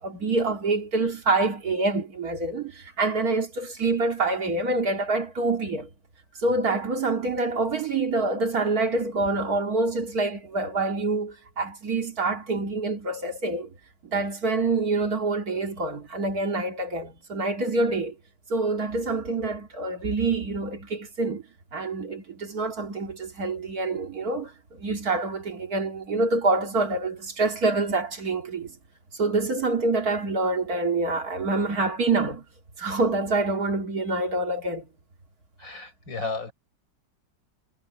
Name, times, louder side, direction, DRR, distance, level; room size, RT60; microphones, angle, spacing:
voice 1, 0.0-5.9 6.4-13.7 14.0-18.1 18.5-28.7 29.1-32.4 32.8-34.9, right 3 dB, 55° right, 2.8 m, -26 dB
voice 2, 35.6-36.5, left 4 dB, 80° left, 7.0 m, -33 dB
omnidirectional pair, 2.0 m